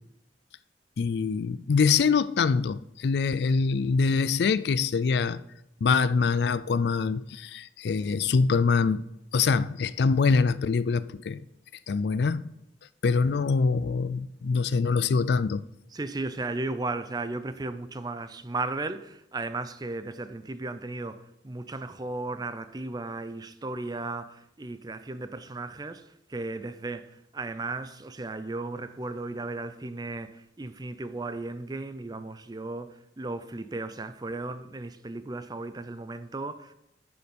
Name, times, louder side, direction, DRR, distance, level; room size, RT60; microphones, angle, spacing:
voice 1, 1.0-5.4 5.8-9.1 9.3-11.4 11.9-12.4 13.0-15.6, left 5 dB, 65° left, 0.4 m, -24 dB
voice 2, 15.9-36.7, right 2 dB, 20° right, 0.5 m, -35 dB
9.4 x 6.9 x 5.2 m
head